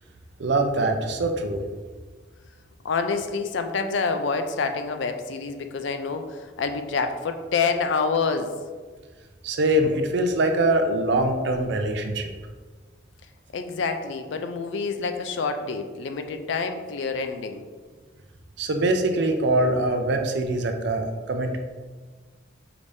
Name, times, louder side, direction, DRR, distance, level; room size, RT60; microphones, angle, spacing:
voice 1, 0.4-1.6 9.4-12.3 18.6-21.6, right 1 dB, 65° right, 5 dB, 0.5 m, -23 dB
voice 2, 2.8-8.5 13.5-17.6, left 4 dB, 75° left, 7 dB, 0.4 m, -27 dB
4.9 x 3.3 x 2.6 m, 1.4 s
head